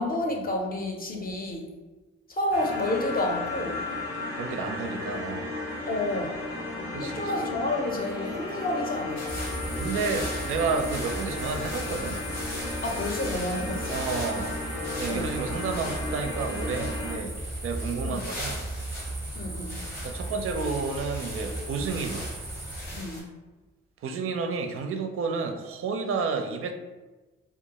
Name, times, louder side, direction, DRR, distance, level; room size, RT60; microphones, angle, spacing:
voice 1, 0.0-1.7 2.3-3.9 5.9-6.3 7.0-9.4 12.8-14.0 15.1-15.3 18.0-18.2 19.4-19.9 22.9-23.3, left 1 dB, 30° left, 1 dB, 0.6 m, -30 dB
sound 1, 2.5-17.1, left 2 dB, 70° left, 0.8 m, -34 dB
voice 2, 4.4-5.5 6.9-7.3 9.8-12.2 13.9-14.6 15.0-17.4 17.6-18.6 20.0-22.3 24.0-26.7, right 4 dB, 45° right, 5 dB, 0.4 m, -31 dB
sound 2, 9.2-23.2, left 1 dB, 85° left, 1.2 m, -42 dB
sound 3, 9.3-23.0, right 1 dB, 10° right, 0.6 m, -36 dB
2.3 x 2.2 x 2.8 m, 1.2 s
hypercardioid pair, 45°, 30 cm